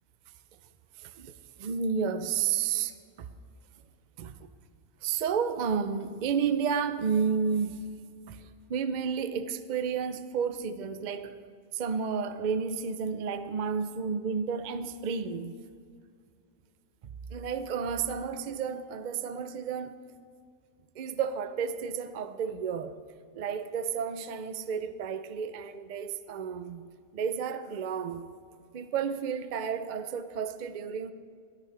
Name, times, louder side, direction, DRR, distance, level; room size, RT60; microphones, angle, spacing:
voice 1, 1.0-2.9 3.2-3.3 4.2-4.5 5.0-7.8 8.3-11.4 11.7-15.5 17.3-20.0 20.9-23.0 23.3-26.8 27.1-28.3 28.7-31.1, right 6 dB, 65° right, 0.4 m, -31 dB
14.0 x 13.0 x 3.3 m
omnidirectional pair, 1.5 m